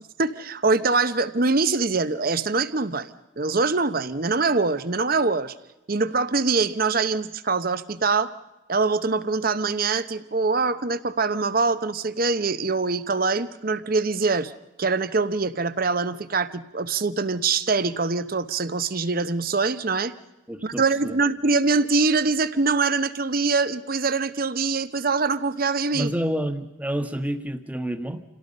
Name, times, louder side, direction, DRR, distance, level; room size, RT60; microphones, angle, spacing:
voice 1, 0.2-5.5 5.9-8.3 8.7-14.5 14.8-20.1 20.6-26.1, right 4 dB, 50° right, 13 dB, 0.9 m, -24 dB
voice 2, 20.5-21.2 25.9-28.2, right 1 dB, 10° right, 7 dB, 1.3 m, -29 dB
28.0 x 17.5 x 5.3 m, 0.99 s
head